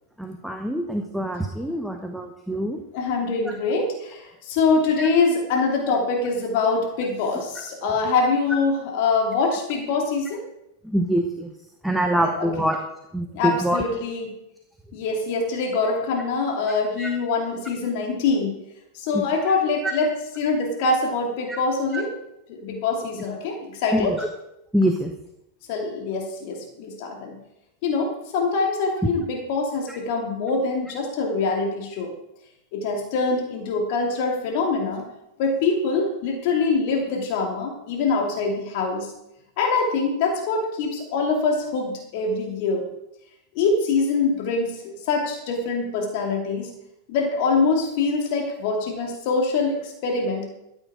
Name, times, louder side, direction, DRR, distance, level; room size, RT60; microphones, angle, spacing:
voice 1, 0.2-2.8 3.4-3.6 5.0-5.1 10.8-11.5 11.8-12.8 13.1-13.8 17.0-17.1 19.1-19.6 19.8-19.9 21.5-21.6 21.9-22.0 23.9-24.3 24.7-25.1 29.9-30.0, right 1 dB, ahead, 4 dB, 1.1 m, -25 dB
voice 2, 2.9-10.4 12.2-12.5 13.3-14.3 14.9-18.6 18.9-20.1 20.4-22.1 22.5-24.1 25.7-27.4 27.8-32.1 32.7-35.0 35.4-39.1 39.6-42.8 43.5-46.7 47.1-50.4, left 4 dB, 50° left, 1 dB, 2.5 m, -24 dB
13.5 x 9.0 x 4.8 m, 0.86 s
figure-of-eight pair, 90°, 0 cm